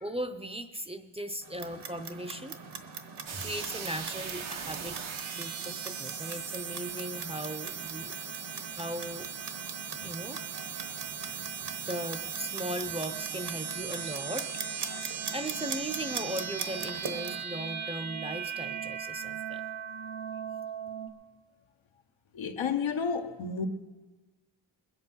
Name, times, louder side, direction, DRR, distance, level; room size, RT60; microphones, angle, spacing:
voice 1, 0.0-2.6 3.4-5.0 5.3-8.1 8.8-9.3 10.0-10.4 11.9-14.5 15.3-19.6, right 1 dB, 15° right, 0.6 m, -38 dB
Clock, 1.4-17.4, right 5 dB, 60° right, 1.1 m, -42 dB
sound 1, 3.3-21.1, right 7 dB, 85° right, 1.1 m, -38 dB
voice 2, 22.3-23.7, left 6 dB, 80° left, 1.1 m, -31 dB
21.0 x 8.2 x 5.5 m
wide cardioid pair, 95°, 46 cm